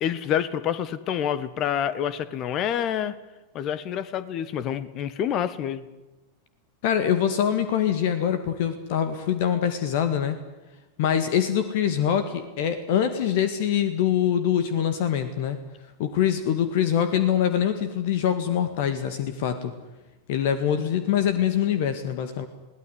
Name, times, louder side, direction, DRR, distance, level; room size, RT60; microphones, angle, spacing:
voice 1, 0.0-3.1 3.5-5.9, left 9 dB, 35° left, 15 dB, 1.4 m, -27 dB
voice 2, 6.8-10.4 11.0-15.6 16.0-19.7 20.3-22.5, left 9 dB, 50° left, 10 dB, 1.9 m, -24 dB
22.5 x 17.5 x 9.9 m, 1.1 s
figure-of-eight pair, 90°, 0 cm